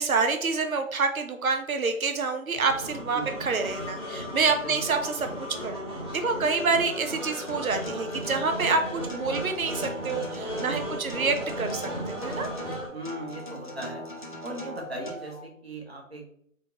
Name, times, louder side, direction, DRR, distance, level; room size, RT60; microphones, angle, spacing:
voice 1, 0.0-12.5, right 4 dB, 80° right, 6 dB, 0.7 m, -27 dB
sound 1, 1.0-1.1 3.2-5.6 8.0-9.8 11.9-15.5, left 4 dB, 60° left, 0.9 m, -46 dB
sound 2, 2.5-12.9, equal, 20° right, 1.0 m, -36 dB
Acoustic guitar, 7.1-15.1, left 1 dB, 35° left, 0.6 m, -41 dB
voice 2, 10.7-11.0 12.9-14.0 14.4-16.3, right 1 dB, 50° right, 1 dB, 1.2 m, -38 dB
4.3 x 3.4 x 2.9 m, 0.68 s
figure-of-eight pair, 165°, 41 cm